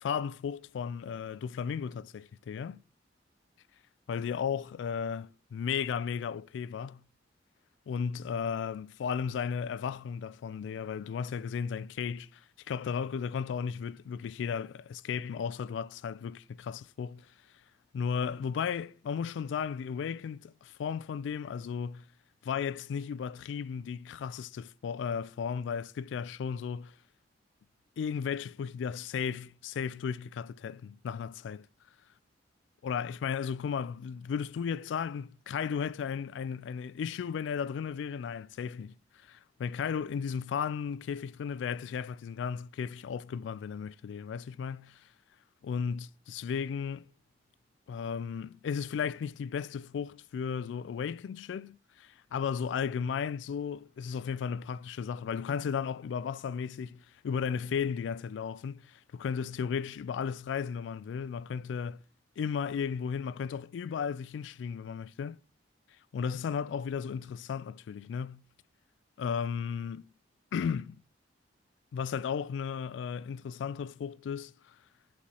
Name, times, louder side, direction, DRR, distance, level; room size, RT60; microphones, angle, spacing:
voice 1, 0.0-2.8 4.1-7.0 7.9-12.4 12.7-17.3 17.9-22.0 22.4-26.9 28.0-31.7 32.8-38.9 39.2-45.0 45.6-47.1 47.9-62.0 62.4-65.4 66.1-68.4 69.2-70.1 70.5-71.0 71.9-74.8, left 6 dB, 80° left, 0.3 m, -35 dB
6.9 x 4.8 x 2.9 m
head